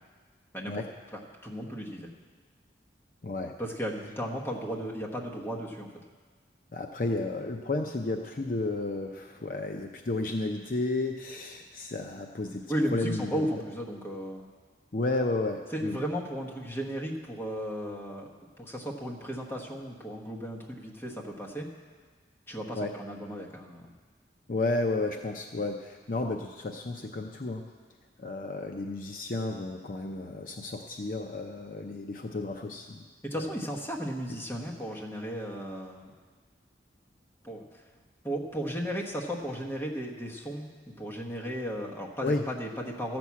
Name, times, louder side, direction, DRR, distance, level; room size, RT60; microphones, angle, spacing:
voice 1, 1.1-2.1 3.6-5.9 12.7-14.5 15.7-18.3 18.6-21.7 22.5-23.9 33.3-36.1 37.4-37.6 38.2-40.7 41.0-43.2, equal, 15° left, -2 dB, 1.2 m, -35 dB
voice 2, 3.2-3.5 6.7-12.7 12.9-13.5 14.9-16.0 22.7-22.9 24.5-27.6 28.2-33.1 33.3-33.5 42.2-42.4, left 2 dB, 50° left, 3 dB, 0.6 m, -32 dB
13.0 x 6.1 x 8.4 m, 1.5 s
head